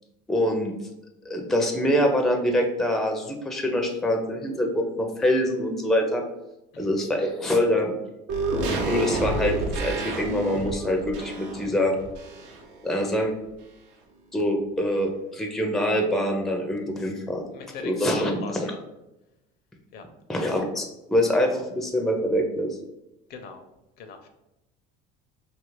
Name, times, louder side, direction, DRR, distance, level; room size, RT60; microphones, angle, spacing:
voice 1, 0.3-0.7 1.3-6.2 6.8-7.9 8.9-12.0 12.8-13.3 14.3-17.4 17.8-18.4 20.3-22.8, equal, ahead, 2 dB, 0.4 m, -24 dB
sound 1, 8.3-12.8 13.1-13.2, right 2 dB, 80° right, 0.6 m, -29 dB
voice 2, 17.5-18.8 19.9-20.1 23.3-23.6 24.0-24.3, left 5 dB, 60° left, 6 dB, 0.5 m, -40 dB
2.8 x 2.4 x 3.1 m, 0.93 s
cardioid pair, 115°, 19 cm